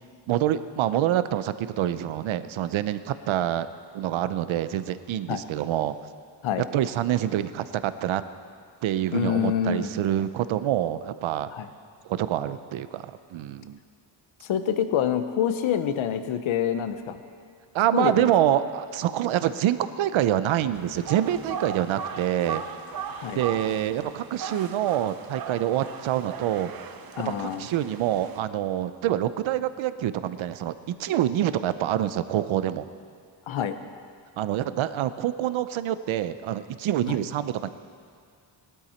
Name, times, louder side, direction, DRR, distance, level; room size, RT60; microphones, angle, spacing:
voice 1, 0.3-3.7 3.9-5.9 6.7-8.2 8.8-11.5 12.1-13.8 17.7-22.6 23.3-26.7 27.2-32.9 34.4-37.7, right 11 dB, 85° right, 13 dB, 0.7 m, -26 dB
voice 2, 9.1-9.9 11.5-11.7 14.4-17.2 17.9-18.3 23.1-23.4 27.2-27.7 33.5-33.7 37.1-37.2, left 9 dB, 85° left, 9 dB, 0.9 m, -26 dB
sound 1, 20.7-28.4, right 6 dB, 50° right, 0.8 m, -38 dB
18.0 x 12.5 x 4.4 m, 2.2 s
cardioid pair, 125°, 46 cm